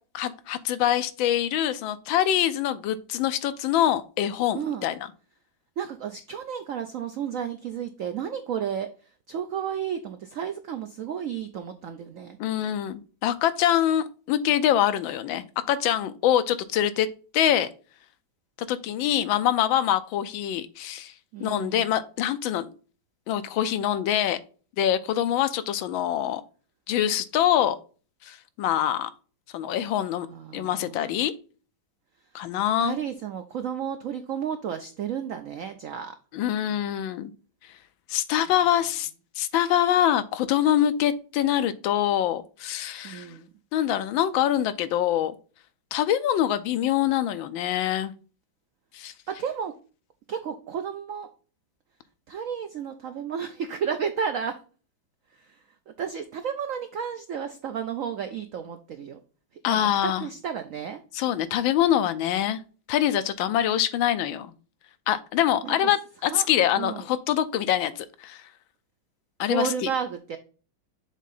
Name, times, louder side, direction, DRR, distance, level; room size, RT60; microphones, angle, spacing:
voice 1, 0.1-4.9 12.4-17.1 17.3-17.7 18.7-21.1 21.4-22.7 23.3-24.4 24.8-26.4 26.9-27.8 28.2-29.1 29.5-30.3 30.5-31.3 32.3-33.0 36.3-37.3 38.1-39.1 39.4-43.3 43.7-45.3 45.9-48.1 48.9-49.1 59.6-60.3 61.1-62.6 62.9-64.5 65.1-68.4 69.4-69.9, left 11 dB, 85° left, 13 dB, 1.4 m, -24 dB
voice 2, 4.5-4.9 5.8-8.9 9.3-12.4 21.3-21.9 30.3-31.1 32.8-36.1 43.0-43.5 49.3-49.7 50.3-51.3 52.3-54.5 55.9-59.2 59.7-61.0 65.6-65.8 66.3-66.5 66.7-67.0 69.5-70.4, right 7 dB, 85° right, 7 dB, 0.7 m, -32 dB
7.2 x 3.7 x 3.9 m, 0.38 s
omnidirectional pair, 2.1 m